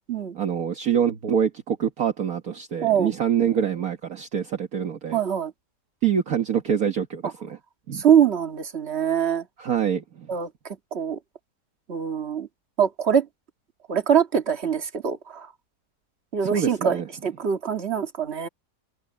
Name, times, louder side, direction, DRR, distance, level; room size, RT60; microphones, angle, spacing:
voice 1, 0.3-5.2 6.0-7.6 7.9-8.0 9.6-10.3 16.4-17.1, right 8 dB, 60° right, 1.7 m, -25 dB
voice 2, 2.8-3.1 5.1-5.5 7.9-9.5 10.3-10.5 10.9-11.2 11.9-12.5 12.8-13.3 13.9-15.5 16.3-18.5, right 8 dB, 40° right, 2.0 m, -23 dB
omnidirectional pair, 1.8 m